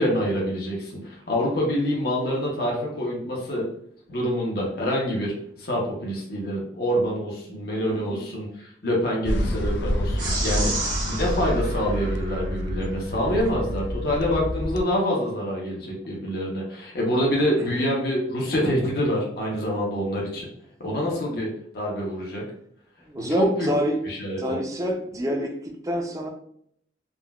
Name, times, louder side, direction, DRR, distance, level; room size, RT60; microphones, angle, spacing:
voice 1, 0.0-3.7 4.1-5.3 5.6-10.7 11.1-20.5 20.8-21.5 21.7-22.4 23.2-23.7 24.1-24.6, equal, 55° left, -3 dB, 0.7 m, -26 dB
sound 1, 9.3-14.8, equal, 75° left, 0.4 m, -28 dB
sound 2, 10.2-12.8, right 2 dB, 75° right, 1.1 m, -32 dB
voice 2, 10.6-10.9 23.1-24.0 24.4-26.3, equal, 20° right, 2 dB, 0.4 m, -27 dB
3.6 x 2.2 x 2.2 m, 0.67 s
head